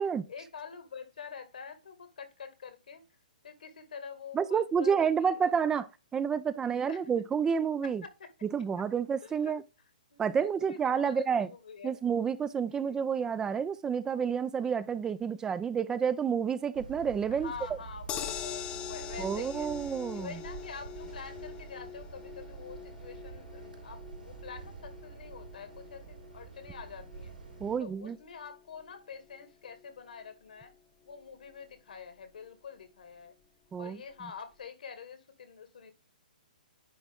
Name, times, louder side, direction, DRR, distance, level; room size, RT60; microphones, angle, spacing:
voice 1, 0.0-3.0 3.4-5.5 6.9-7.1 7.8-8.3 8.8-8.9 9.2-9.5 10.1-11.9 12.7-13.0 17.3-19.7 20.1-27.4 27.8-30.7 31.0-33.3 33.8-35.9, left 6 dB, 70° left, 2.1 m, -46 dB
voice 2, 4.3-5.9 6.1-8.0 8.5-9.6 10.2-11.5 11.8-17.5 19.2-20.4 27.6-28.2 33.7-34.0, right 7 dB, 15° right, 0.4 m, -29 dB
sound 1, 16.7-27.8, right 5 dB, 85° right, 3.8 m, -47 dB
sound 2, 18.1-30.3 30.7-30.8 31.1-31.2, left 8 dB, 25° left, 1.0 m, -44 dB
10.0 x 4.3 x 3.6 m
hypercardioid pair, 130°, 5 cm